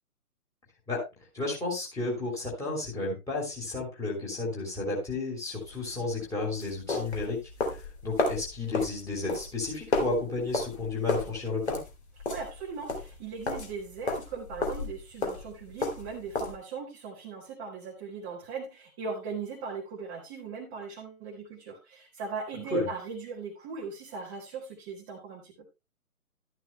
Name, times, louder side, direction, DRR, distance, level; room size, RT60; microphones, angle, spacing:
voice 1, 1.3-7.4 7.7-7.8 8.0-11.8 22.7-22.9, left 3 dB, 5° left, -4 dB, 2.9 m, -32 dB
sound 1, 5.6-16.6, left 3 dB, 45° left, 2.9 m, -33 dB
voice 2, 12.3-25.7, right 5 dB, 15° right, -1 dB, 1.1 m, -39 dB
12.5 x 11.0 x 2.2 m, 0.24 s
figure-of-eight pair, 135°, 44 cm